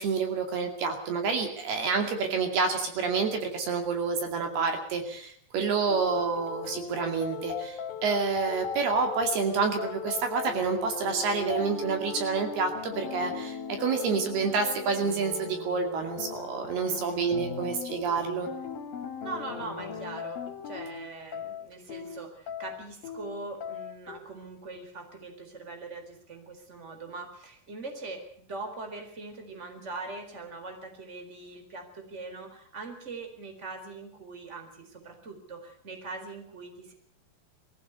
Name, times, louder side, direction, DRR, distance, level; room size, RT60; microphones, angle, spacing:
voice 1, 0.0-18.5, right 5 dB, 70° right, 5 dB, 4.3 m, -28 dB
voice 2, 2.3-2.7 16.8-17.2 19.2-36.9, right 3 dB, 15° right, 5 dB, 4.0 m, -42 dB
sound 1, 5.9-24.2, left 7 dB, 60° left, 4.0 m, -38 dB
22.5 x 15.5 x 7.9 m, 0.63 s
omnidirectional pair, 4.9 m